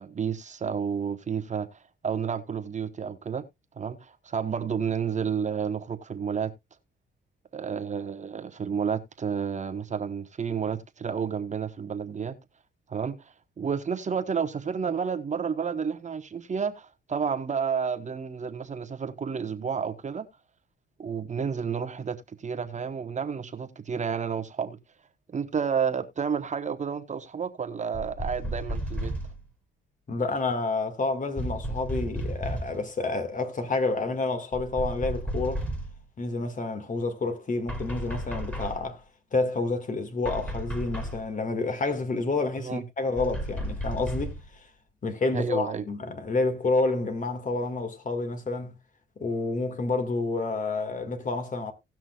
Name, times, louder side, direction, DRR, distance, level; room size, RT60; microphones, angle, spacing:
voice 1, 0.0-3.4 3.8-6.5 7.5-12.3 12.9-20.3 21.0-24.8 25.3-29.1 42.6-42.8 45.3-45.8, right 6 dB, 35° right, 1.1 m, -31 dB
sound 1, 27.9-29.4 31.4-32.8 34.5-36.0 37.7-38.9 40.2-41.3 43.2-44.5, equal, 5° left, 2.6 m, -33 dB
voice 2, 30.1-35.7 36.2-39.0 39.3-44.7 45.0-48.7 49.2-51.7, left 3 dB, 40° left, 1.9 m, -29 dB
18.0 x 6.0 x 2.3 m
cardioid pair, 90°, 20 cm